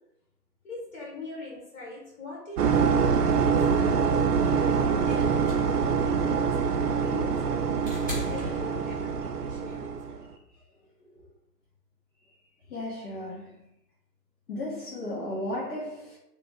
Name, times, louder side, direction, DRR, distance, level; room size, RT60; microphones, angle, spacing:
voice 1, 0.6-3.9 4.3-10.2, left 2 dB, 50° left, 1.3 m, -41 dB
sound 1, 2.6-10.2, right 6 dB, 70° right, 0.5 m, -25 dB
sound 2, 5.0-9.3 10.6-10.7, equal, 10° left, 0.6 m, -39 dB
voice 2, 12.7-13.5 14.5-16.2, left 1 dB, 75° left, 1.2 m, -34 dB
2.9 x 2.3 x 3.6 m
hypercardioid pair, 150°, 48 cm